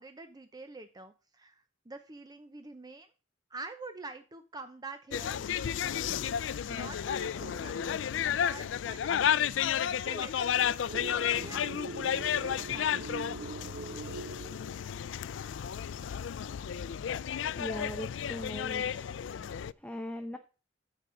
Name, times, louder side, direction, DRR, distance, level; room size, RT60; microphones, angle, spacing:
voice 1, 0.0-3.1 3.5-13.1, right 3 dB, 20° right, 8 dB, 0.8 m, -47 dB
sound 1, 5.1-19.7, left 9 dB, 85° left, 0.4 m, -32 dB
sound 2, 10.9-15.2, right 3 dB, 55° right, 0.4 m, -42 dB
voice 2, 17.6-19.1 19.5-20.4, equal, 5° left, 6 dB, 0.8 m, -40 dB
14.5 x 5.4 x 3.9 m, 0.34 s
head